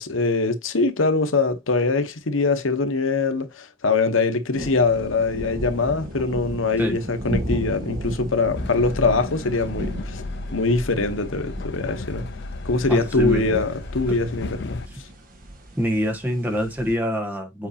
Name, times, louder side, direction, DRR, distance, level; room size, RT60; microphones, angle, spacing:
voice 1, 0.0-10.2 10.5-12.3 12.6-15.1, left 3 dB, 80° left, 1.1 m, -23 dB
sound 1, 4.5-17.0, equal, 45° right, 1.5 m, -35 dB
Train, 8.5-14.9, left 3 dB, 55° left, 0.5 m, -34 dB
voice 2, 12.9-13.6 15.8-17.7, equal, 10° right, 1.2 m, -25 dB
8.0 x 4.8 x 2.8 m
head